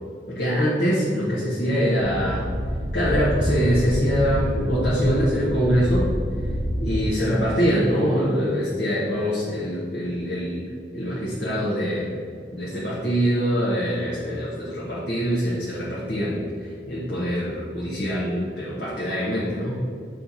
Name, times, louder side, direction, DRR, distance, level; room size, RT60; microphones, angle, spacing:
voice 1, 0.3-2.4 2.9-6.1 6.8-10.6 10.9-12.1 12.5-19.7, equal, 75° left, -8 dB, 1.2 m, -24 dB
sound 1, 2.0-7.0, equal, 10° left, 1.4 m, -27 dB
7.4 x 3.3 x 4.0 m, 2.1 s
head